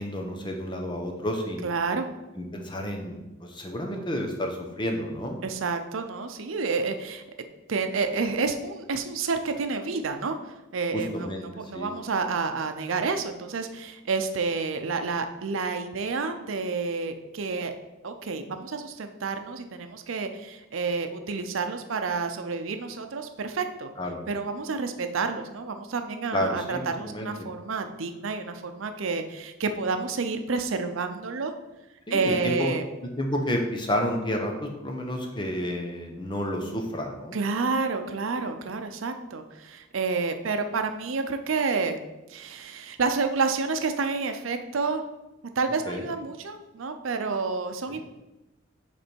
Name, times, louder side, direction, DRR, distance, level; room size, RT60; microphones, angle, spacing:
voice 1, 0.0-1.7 2.4-5.4 10.9-11.9 24.0-24.2 26.3-27.3 32.1-32.8 33.2-37.4 45.9-46.0 47.9-48.0, equal, 25° left, 2 dB, 0.8 m, -30 dB
voice 2, 1.6-2.1 5.4-7.2 7.7-10.4 10.7-17.7 18.0-23.9 24.3-31.5 32.1-32.8 37.3-42.0 42.3-45.0 45.6-48.0, right 4 dB, 85° right, 7 dB, 0.6 m, -29 dB
8.1 x 3.4 x 4.4 m, 1.0 s
head